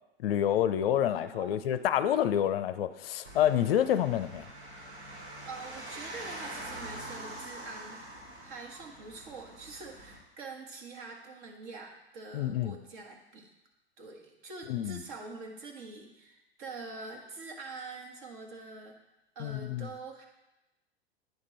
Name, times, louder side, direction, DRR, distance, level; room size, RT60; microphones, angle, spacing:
voice 1, 0.2-4.4 12.3-12.7 14.7-15.0 19.4-19.9, left 10 dB, 65° left, 12 dB, 0.5 m, -28 dB
voice 2, 1.1-1.7 5.4-13.5 14.0-19.0 19.3-20.3, right 3 dB, 50° right, 2 dB, 1.4 m, -45 dB
sound 1, 3.2-10.2, right 1 dB, 85° right, 1.9 m, -44 dB
9.5 x 3.6 x 4.4 m, 0.97 s
figure-of-eight pair, 100°, 32 cm